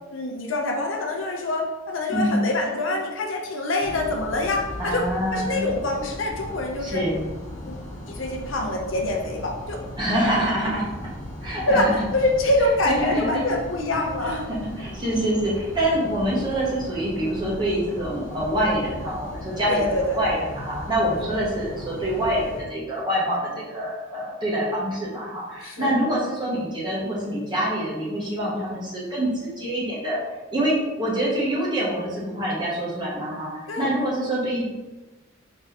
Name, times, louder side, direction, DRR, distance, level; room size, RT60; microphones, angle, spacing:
voice 1, 0.1-5.1 5.3-7.0 7.7-7.8 8.1-9.8 11.7-14.5 19.7-20.2 25.6-25.9 33.7-33.9, left 2 dB, 65° left, 1 dB, 0.6 m, -25 dB
voice 2, 2.1-2.4 4.8-5.7 6.8-7.3 10.0-10.9 11.4-12.1 12.9-13.4 14.2-30.2 30.5-33.5 33.8-34.6, right 1 dB, 20° right, -6 dB, 1.1 m, -25 dB
sound 1, 3.8-22.6, left 1 dB, 15° left, 0.9 m, -37 dB
4.2 x 3.5 x 2.9 m, 1.2 s
head